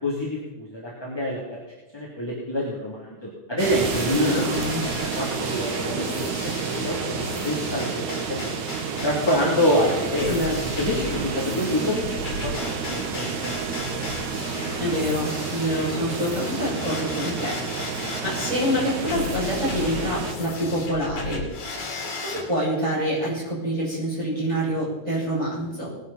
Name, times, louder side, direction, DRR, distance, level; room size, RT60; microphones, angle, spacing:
voice 1, 0.0-1.6 1.9-8.6 9.0-10.4 10.8-13.5, left 1 dB, 10° left, -5 dB, 2.8 m, -27 dB
sound 1, 3.6-22.4, left 3 dB, 70° left, 3.8 m, -35 dB
sound 2, 3.6-20.3, right 5 dB, 80° right, 2.8 m, -30 dB
voice 2, 4.2-4.8 10.2-10.5 14.8-17.6 17.9-21.4 22.2-25.9, equal, 10° right, -6 dB, 6.3 m, -26 dB
20.0 x 11.5 x 4.3 m, 1.1 s
omnidirectional pair, 3.3 m